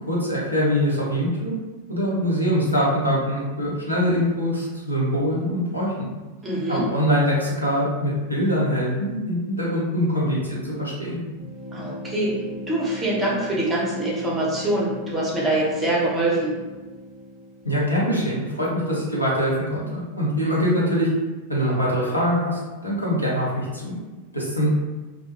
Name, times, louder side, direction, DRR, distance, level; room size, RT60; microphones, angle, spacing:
voice 1, 0.1-1.5 1.9-6.1 6.7-11.2 17.6-21.1 21.5-23.9 24.3-24.7, equal, 90° left, -7 dB, 0.8 m, -23 dB
voice 2, 6.4-6.8 11.7-12.3 12.7-16.5, right 1 dB, 10° right, -6 dB, 0.9 m, -24 dB
sound 1, 11.3-18.0, left 1 dB, 20° left, 0.6 m, -38 dB
2.2 x 2.2 x 2.8 m, 1.2 s
figure-of-eight pair, 90°, 0 cm